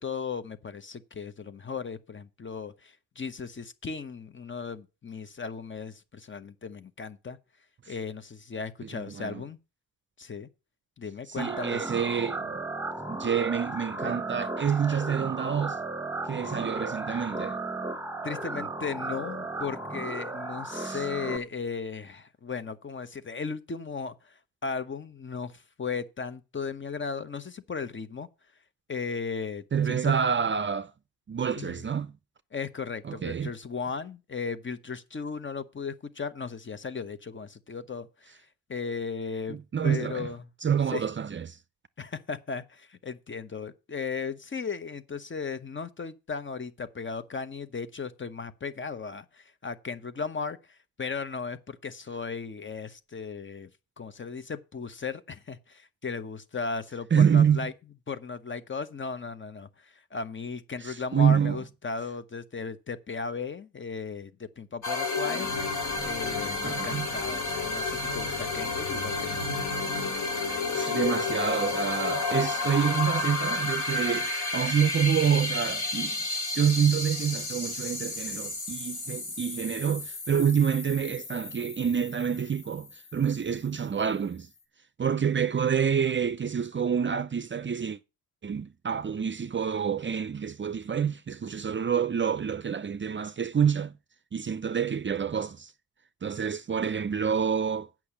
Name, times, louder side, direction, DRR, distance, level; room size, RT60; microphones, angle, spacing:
voice 1, 0.0-7.4 7.9-9.6 10.2-10.5 11.0-11.8 18.2-28.3 28.9-30.1 31.6-31.9 32.5-38.3 38.7-40.4 40.9-41.1 42.0-53.7 54.0-57.7 58.1-65.5 66.0-69.4, left 5 dB, 35° left, 0.9 m, -36 dB
voice 2, 8.9-9.4 11.3-12.6 13.1-15.8 16.3-17.6 20.7-21.0 29.7-30.9 31.3-32.1 33.0-33.5 39.5-40.3 40.6-41.6 57.1-57.7 60.8-61.6 66.0-66.1 66.6-67.1 70.2-70.3 70.7-84.5 85.0-88.0 88.4-93.9 94.3-95.7 96.2-97.9, right 7 dB, 35° right, 0.5 m, -27 dB
sound 1, 11.4-21.4, right 2 dB, 10° right, 1.3 m, -35 dB
sound 2, 64.8-83.3, left 3 dB, 55° left, 3.1 m, -31 dB
8.5 x 6.0 x 7.1 m
cardioid pair, 105°, 35 cm